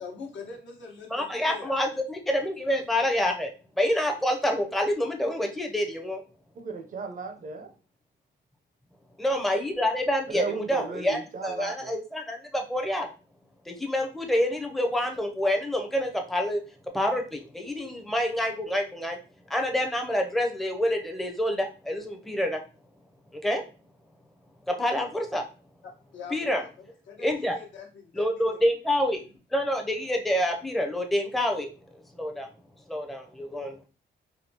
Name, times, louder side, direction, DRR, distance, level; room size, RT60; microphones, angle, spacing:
voice 1, 0.0-1.7 25.8-26.7 27.1-28.6, left 5 dB, 70° left, 0 dB, 1.1 m, -43 dB
voice 2, 1.1-3.5 3.8-6.2 9.2-13.1 13.7-16.6 16.9-19.2 19.5-22.6 23.3-23.6 24.7-25.4 26.3-26.6 27.2-27.6 28.1-29.2 29.5-31.7 32.1-32.5 32.9-33.8, left 1 dB, ahead, 2 dB, 0.6 m, -27 dB
voice 3, 6.6-7.7 10.3-12.0, right 5 dB, 40° right, 6 dB, 0.5 m, -35 dB
3.5 x 2.3 x 2.7 m, 0.35 s
cardioid pair, 90°, 20 cm